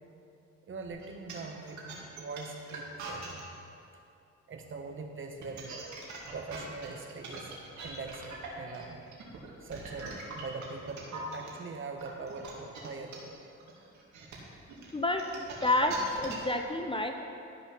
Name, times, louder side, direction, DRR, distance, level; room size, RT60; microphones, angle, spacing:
voice 1, 0.7-3.4 4.5-5.8 6.3-7.5 7.8-9.0 9.6-13.3 15.8-15.9, right 4 dB, 40° right, 3 dB, 1.2 m, -42 dB
sound 1, 0.9-3.4 5.2-11.5 12.0-16.6, right 4 dB, 70° right, 2.2 m, -43 dB
voice 2, 14.9-15.9 16.2-17.2, left 2 dB, 15° left, 4 dB, 0.6 m, -29 dB
12.0 x 5.5 x 5.9 m, 2.6 s
cardioid pair, 90°, 30 cm